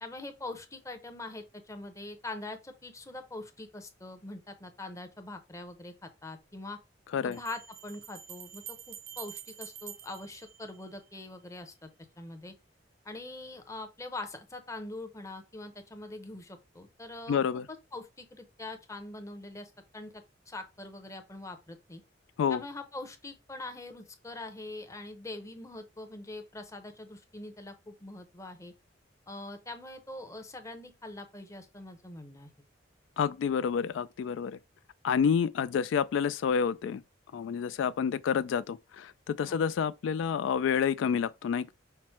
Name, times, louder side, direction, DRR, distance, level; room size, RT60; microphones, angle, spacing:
voice 1, 0.0-6.8 7.2-11.9 12.2-12.5 13.0-17.4 17.9-22.0 22.5-28.7 29.3-32.5 39.5-39.6, left 2 dB, 15° left, 0.7 m, -43 dB
sound 1, 5.7-5.8 7.3-11.3, right 10 dB, 50° right, 0.5 m, -47 dB
voice 2, 17.3-17.7 22.4-22.6 33.2-34.6 35.0-37.0 37.3-41.7, left 7 dB, 80° left, 0.3 m, -29 dB
5.8 x 2.1 x 4.4 m
head